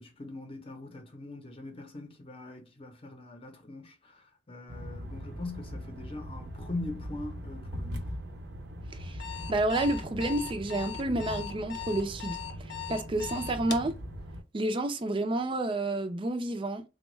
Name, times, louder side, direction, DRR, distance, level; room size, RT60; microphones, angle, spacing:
voice 1, 0.0-8.2, left 2 dB, 35° left, 0.8 m, -42 dB
sound 1, 4.7-14.4, equal, 70° right, 0.7 m, -40 dB
Alarm, 9.0-13.9, left 10 dB, 80° left, 0.6 m, -39 dB
voice 2, 9.5-12.4 12.9-14.0 14.5-16.8, right 2 dB, 30° right, 0.5 m, -30 dB
3.5 x 2.2 x 3.1 m
head